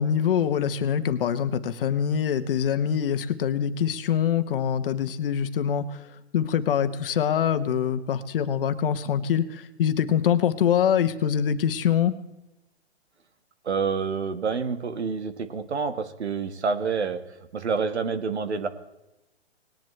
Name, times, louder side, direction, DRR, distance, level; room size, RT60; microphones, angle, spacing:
voice 1, 0.0-6.0 6.3-12.1, left 8 dB, 55° left, 11 dB, 1.1 m, -24 dB
voice 2, 13.6-18.7, right 5 dB, 85° right, 10 dB, 1.5 m, -28 dB
19.5 x 10.5 x 3.2 m, 0.95 s
hypercardioid pair, 135°, 33 cm